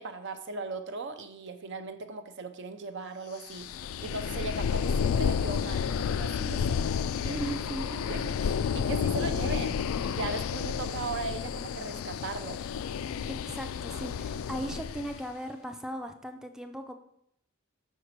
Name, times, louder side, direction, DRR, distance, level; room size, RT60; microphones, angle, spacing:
voice 1, 0.0-3.7 4.0-7.5 7.8-12.6, right 3 dB, 60° right, 8 dB, 0.7 m, -38 dB
sound 1, 3.5-15.2, left 7 dB, 85° left, 0.3 m, -31 dB
voice 2, 7.4-7.9 13.3-16.9, right 1 dB, 5° right, 5 dB, 0.4 m, -37 dB
5.9 x 4.6 x 6.5 m, 0.74 s
head